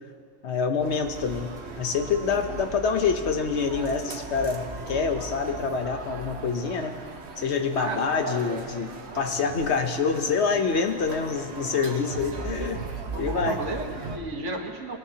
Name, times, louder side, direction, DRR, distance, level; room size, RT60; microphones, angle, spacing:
voice 1, 0.4-6.9 7.4-8.9 9.1-12.8 13.2-13.6, left 5 dB, 70° left, 6 dB, 1.2 m, -26 dB
sound 1, 0.8-14.2, right 3 dB, 65° right, 1.3 m, -38 dB
voice 2, 7.8-8.6 13.1-15.0, right 2 dB, 85° right, 3 dB, 1.7 m, -33 dB
21.0 x 18.0 x 2.9 m, 2.4 s
omnidirectional pair, 1.2 m